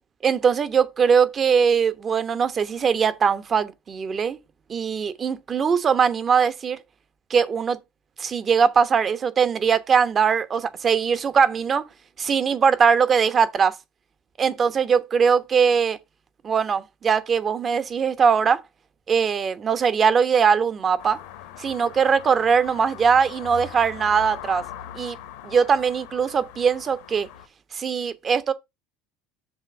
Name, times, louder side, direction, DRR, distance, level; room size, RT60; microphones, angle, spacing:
voice 1, 0.2-4.4 4.7-6.8 7.3-7.8 8.2-11.8 12.2-13.8 14.4-16.0 16.4-18.6 19.1-21.2 21.6-24.6 24.9-25.2 25.4-27.3 27.7-28.5, right 6 dB, 35° right, 1.1 m, -21 dB
sound 1, 21.0-27.5, left 11 dB, 70° left, 1.1 m, -41 dB
6.9 x 3.4 x 5.9 m
hypercardioid pair, 75°, 0 cm